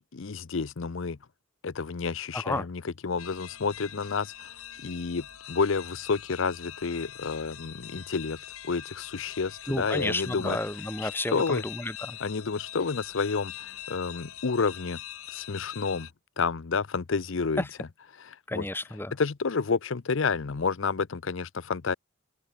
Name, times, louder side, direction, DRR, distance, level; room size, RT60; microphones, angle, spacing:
voice 1, 0.1-1.2 1.6-4.5 4.8-8.4 8.6-10.6 11.0-11.6 12.2-15.0 15.3-16.1 16.4-17.6 18.5-18.6 19.2-21.9, left 5 dB, 65° left, 0.6 m, -30 dB
voice 2, 2.3-2.6 9.7-12.2 17.6-17.7 18.5-19.1, left 1 dB, 10° left, 1.2 m, -31 dB
sound 1, 3.2-16.1, left 11 dB, 90° left, 2.4 m, -43 dB
head